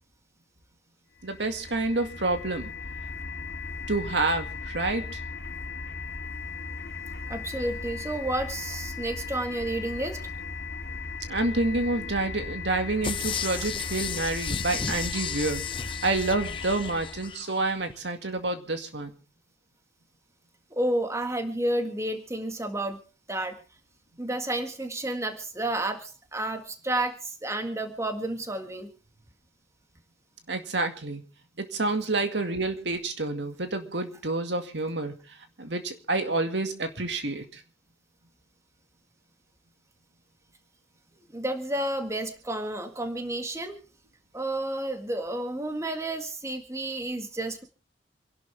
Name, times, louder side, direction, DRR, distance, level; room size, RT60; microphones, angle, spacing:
sound 1, 1.2-17.4, left 4 dB, 85° left, 2.4 m, -37 dB
voice 1, 1.2-2.7 3.9-5.0 11.3-15.6 16.0-19.1 30.5-31.2 31.6-35.1 35.6-37.6, right 2 dB, 80° right, 6 dB, 2.2 m, -28 dB
voice 2, 7.3-10.2 20.7-23.0 23.3-23.6 24.2-28.9 41.3-43.8 44.3-47.6, right 1 dB, 15° right, 6 dB, 1.8 m, -31 dB
sound 2, 13.0-17.5 17.9-18.0, left 6 dB, 30° left, 0.7 m, -34 dB
27.5 x 11.5 x 3.5 m, 0.35 s
head